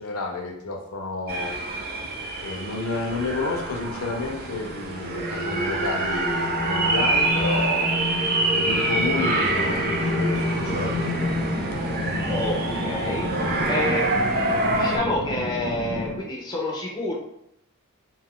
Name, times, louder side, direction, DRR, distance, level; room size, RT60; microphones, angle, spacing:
voice 1, 0.0-1.5 2.4-8.0 8.5-11.2, left 3 dB, 65° left, 2 dB, 0.5 m, -30 dB
sound 1, 1.3-15.0, right 2 dB, 45° right, 0.5 m, -27 dB
sound 2, 3.8-14.0, equal, 80° right, 0.7 m, -29 dB
sound 3, 8.6-16.2, left 1 dB, 90° left, 0.9 m, -32 dB
voice 2, 12.3-14.1 14.6-17.2, left 1 dB, 20° left, -1 dB, 0.5 m, -28 dB
2.6 x 2.3 x 3.5 m, 0.75 s
head